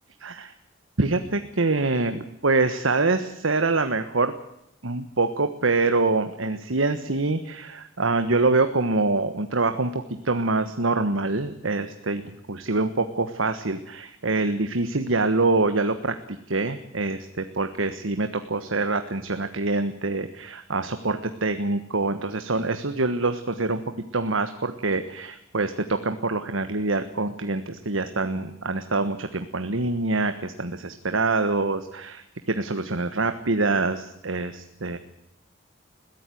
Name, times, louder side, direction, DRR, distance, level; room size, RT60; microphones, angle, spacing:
voice 1, 0.2-0.5 1.0-4.3 4.8-23.8 24.1-35.0, right 3 dB, 85° right, 9 dB, 1.4 m, -25 dB
21.5 x 16.0 x 9.3 m, 0.79 s
head